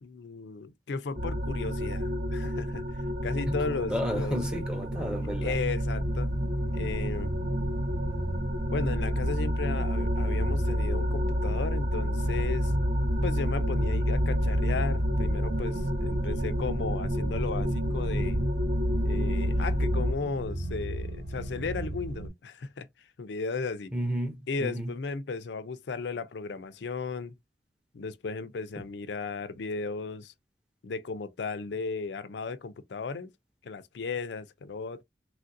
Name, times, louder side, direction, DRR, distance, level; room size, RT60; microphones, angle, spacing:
voice 1, 0.0-2.8 3.2-4.4 5.4-6.3 6.7-7.3 8.7-12.7 13.2-18.4 19.0-22.9 23.2-23.9 24.5-27.4 27.9-30.3 30.8-33.3 33.6-35.0, left 4 dB, 80° left, 0.4 m, -35 dB
sound 1, 1.2-20.1, equal, 50° right, 0.8 m, -29 dB
voice 2, 3.5-5.6 23.9-24.9 28.8-28.9, equal, 5° right, 0.6 m, -33 dB
sound 2, 6.0-22.3, right 1 dB, 85° right, 1.1 m, -37 dB
3.2 x 2.5 x 2.5 m
head